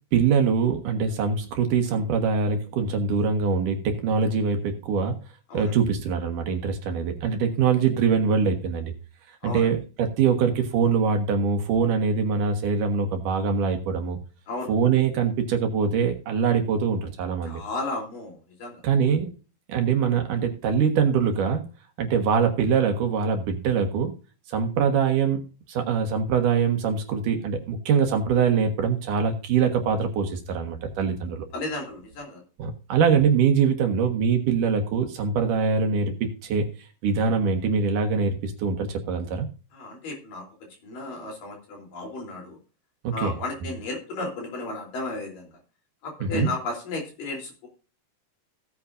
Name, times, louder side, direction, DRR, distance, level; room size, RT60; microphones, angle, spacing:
voice 1, 0.1-5.2 5.5-8.9 9.4-14.2 14.7-17.6 18.8-19.3 19.7-21.6 22.0-24.1 24.5-25.4 25.7-31.5 32.6-36.7 37.0-39.5 43.0-43.4 46.2-46.5, right 6 dB, 70° right, 5 dB, 3.0 m, -23 dB
voice 2, 17.5-18.8 31.5-32.4 39.7-40.4 40.8-42.6 43.1-45.5 46.0-47.7, left 2 dB, 75° left, 0 dB, 5.2 m, -34 dB
17.0 x 8.5 x 2.6 m, 0.35 s
omnidirectional pair, 4.0 m